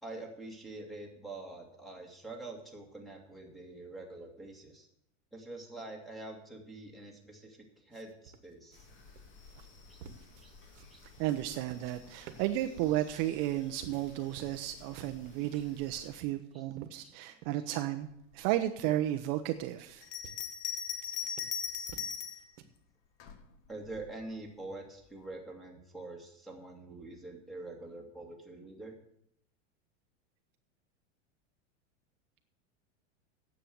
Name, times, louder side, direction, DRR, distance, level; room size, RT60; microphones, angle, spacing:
voice 1, 0.0-4.9 5.3-8.9 9.9-10.0 10.4-10.5 10.9-11.0 15.5-15.6 16.5-16.6 17.0-17.1 23.7-29.0, right 2 dB, ahead, -2 dB, 2.2 m, -45 dB
sound 1, 7.9-12.0 12.3-14.7 15.0-15.8 16.2-17.7 18.0-18.1 18.8-19.0 19.6-19.9 20.2-20.5 21.0-22.6, right 7 dB, 70° right, 1.5 m, -52 dB
sound 2, 8.7-16.2, left 4 dB, 30° left, 2.2 m, -56 dB
voice 2, 11.2-18.1 18.3-20.1, right 14 dB, 50° right, 8 dB, 0.8 m, -33 dB
Bell, 20.0-22.5 23.2-24.1, left 8 dB, 45° left, 1.4 m, -38 dB
10.0 x 7.6 x 7.7 m, 0.75 s
supercardioid pair, 135°, 37 cm